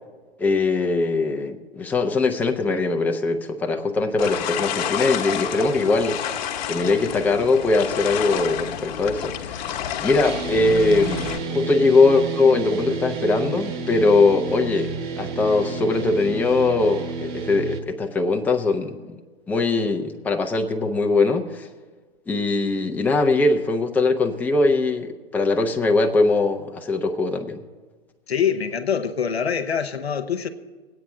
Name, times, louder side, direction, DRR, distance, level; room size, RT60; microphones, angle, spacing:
voice 1, 0.4-6.2 6.7-9.8 10.0-19.2 19.5-21.7 22.3-27.6, left 3 dB, 5° left, 0.6 m, -21 dB
sound 1, 4.2-11.4, left 9 dB, 45° left, 1.1 m, -29 dB
sound 2, 10.2-17.8, right 5 dB, 30° right, 1.3 m, -30 dB
voice 2, 28.3-30.5, left 7 dB, 75° left, 1.0 m, -24 dB
21.5 x 8.5 x 3.7 m
figure-of-eight pair, 110°, 31 cm